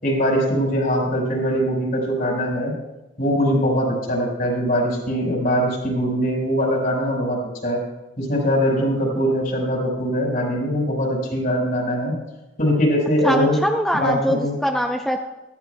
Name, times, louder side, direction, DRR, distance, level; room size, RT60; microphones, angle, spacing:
voice 1, 0.0-2.7 3.2-7.8 8.2-12.1 12.6-13.6 14.0-14.5, equal, 50° left, -2 dB, 4.6 m, -22 dB
voice 2, 13.2-15.2, equal, ahead, 2 dB, 0.5 m, -22 dB
18.0 x 14.0 x 2.2 m, 1.0 s
head